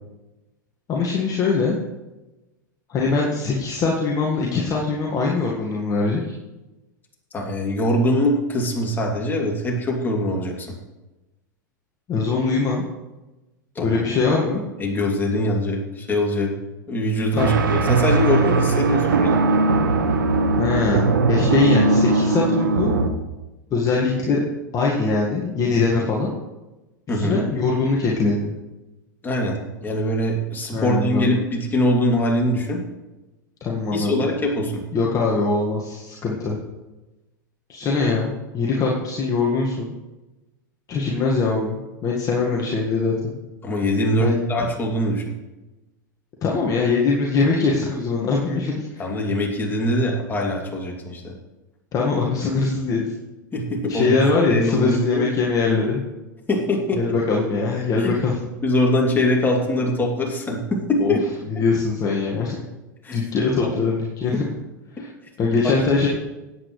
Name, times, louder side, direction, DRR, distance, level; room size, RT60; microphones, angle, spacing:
voice 1, 0.9-1.8 2.9-6.3 12.1-12.8 13.8-14.6 17.3-17.5 20.6-23.0 23.7-24.4 24.7-26.3 27.1-28.5 30.7-31.4 33.6-34.2 34.9-36.6 37.7-39.9 40.9-43.3 44.2-44.4 46.4-49.3 51.9-53.1 53.9-56.0 56.9-58.4 61.0-61.1 61.5-62.6 63.1-64.4 64.9-65.1 65.4-66.1, left 4 dB, 35° left, -3 dB, 1.7 m, -22 dB
voice 2, 7.3-10.7 13.7-14.0 14.8-16.5 16.9-19.4 25.9-26.1 27.1-27.4 29.2-32.8 33.9-34.8 43.6-45.2 49.0-51.3 53.5-54.2 54.5-55.3 56.5-57.0 58.0-58.2 58.6-60.6 60.9-61.2 61.5-61.6 63.0-63.2 65.0-65.1 65.6-65.8, left 1 dB, 20° left, -1 dB, 2.8 m, -23 dB
sound 1, 17.4-23.1, right 3 dB, 85° right, 1.1 m, -19 dB
17.5 x 8.5 x 3.3 m, 1.1 s
hypercardioid pair, 95°, 11 cm